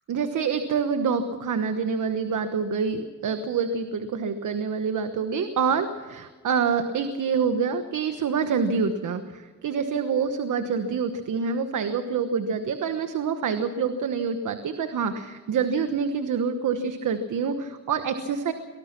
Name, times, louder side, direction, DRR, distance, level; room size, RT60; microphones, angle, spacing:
voice 1, 0.1-18.5, right 6 dB, 80° right, 8 dB, 1.2 m, -26 dB
23.5 x 19.5 x 6.0 m, 1.4 s
wide cardioid pair, 175°, 30 cm